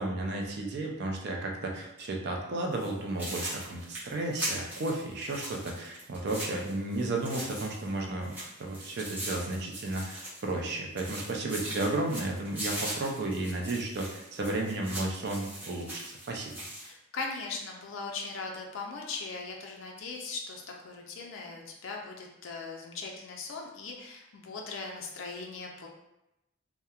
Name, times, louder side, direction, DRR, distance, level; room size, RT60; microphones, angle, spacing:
voice 1, 0.0-8.3 8.6-16.0 16.3-16.6, right 2 dB, 55° right, 1 dB, 0.4 m, -33 dB
sound 1, 2.7-2.9 3.2-7.9 8.2-10.7 11.0-16.9, right 1 dB, 10° right, 0.8 m, -40 dB
voice 2, 16.8-25.9, left 4 dB, 70° left, 0 dB, 0.4 m, -39 dB
2.7 x 2.1 x 2.3 m, 0.90 s
head